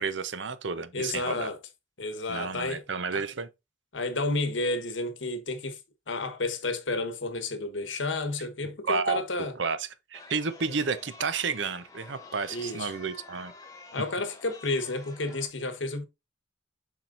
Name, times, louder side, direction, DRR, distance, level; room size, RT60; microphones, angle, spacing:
voice 1, 0.0-1.5 2.3-3.5 8.8-9.2 9.6-13.5, right 5 dB, 80° right, 0.8 m, -31 dB
voice 2, 0.9-1.6 2.0-2.8 3.1-3.2 3.9-5.8 6.1-9.5 12.5-12.9 13.9-16.1, left 2 dB, 90° left, 1.3 m, -31 dB
Chatter, 10.1-15.5, left 3 dB, 20° left, 1.2 m, -49 dB
7.4 x 5.9 x 2.6 m
head